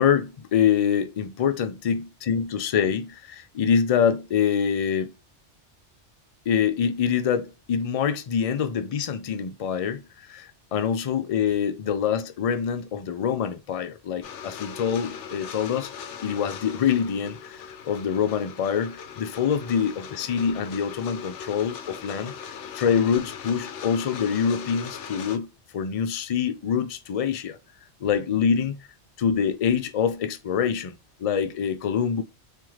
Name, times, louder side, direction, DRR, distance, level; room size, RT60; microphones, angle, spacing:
voice 1, 0.0-5.1 6.5-15.9 16.2-22.3 22.7-25.5 25.7-27.6 28.0-28.8 29.2-32.2, left 7 dB, 55° left, 0.4 m, -25 dB
sound 1, 14.2-25.4, left 7 dB, 85° left, 0.9 m, -39 dB
3.6 x 2.7 x 3.1 m
omnidirectional pair, 1.2 m